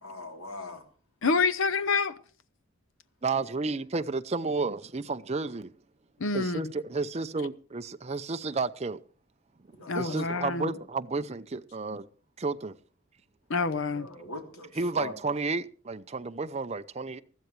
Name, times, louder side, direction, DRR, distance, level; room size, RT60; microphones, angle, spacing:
voice 1, 0.0-0.8 9.8-10.8 13.9-15.1, left 2 dB, 90° left, 3.2 m, -42 dB
voice 2, 1.2-2.1 6.2-6.7 9.9-10.7 13.5-14.1, left 4 dB, 65° left, 0.8 m, -27 dB
voice 3, 3.2-5.7 6.3-9.0 9.9-12.1 12.4-12.8 14.7-17.2, right 3 dB, 30° right, 0.6 m, -32 dB
20.0 x 14.0 x 3.2 m
head